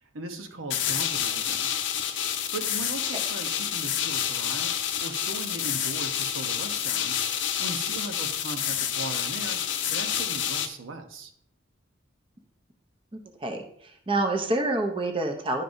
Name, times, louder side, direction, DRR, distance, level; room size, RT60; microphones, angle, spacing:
voice 1, 0.0-1.7 2.3-4.7 5.0-7.2 7.6-9.6 9.9-11.3, right 2 dB, 90° right, 6 dB, 0.9 m, -38 dB
sound 1, 0.7-10.7, left 9 dB, 65° left, 0.6 m, -28 dB
voice 2, 13.1-15.6, right 2 dB, 25° right, 3 dB, 0.7 m, -28 dB
11.0 x 5.3 x 2.6 m, 0.67 s
head